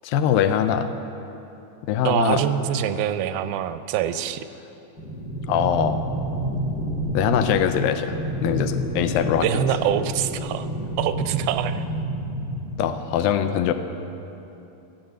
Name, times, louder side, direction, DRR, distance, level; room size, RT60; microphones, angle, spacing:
voice 1, 0.0-0.9 1.9-2.4 5.5-6.0 7.1-8.2 8.4-9.5 12.8-13.7, left 9 dB, 85° left, 9 dB, 2.3 m, -22 dB
voice 2, 2.0-4.5 9.4-10.7 11.0-11.8, right 10 dB, 90° right, 11 dB, 2.4 m, -24 dB
sound 1, 5.0-13.0, right 1 dB, 45° left, 1.3 m, -29 dB
13.0 x 8.9 x 7.8 m, 2.9 s
omnidirectional pair, 4.1 m